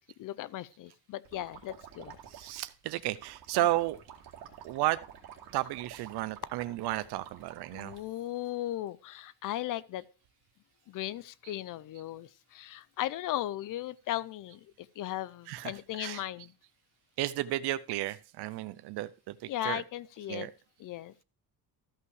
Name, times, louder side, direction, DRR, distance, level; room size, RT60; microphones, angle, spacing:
voice 1, 0.2-2.2 7.7-10.0 10.9-16.5 19.5-20.5 20.8-21.1, left 14 dB, 55° left, 0.5 m, -37 dB
sound 1, 1.2-8.0, right 9 dB, 65° right, 2.1 m, -50 dB
voice 2, 2.3-4.0 4.6-5.0 5.5-7.9 15.5-15.7 16.0-16.2 17.2-19.8 20.3-20.5, right 15 dB, 80° right, 0.7 m, -33 dB
13.5 x 5.6 x 4.7 m
cardioid pair, 170°, 39 cm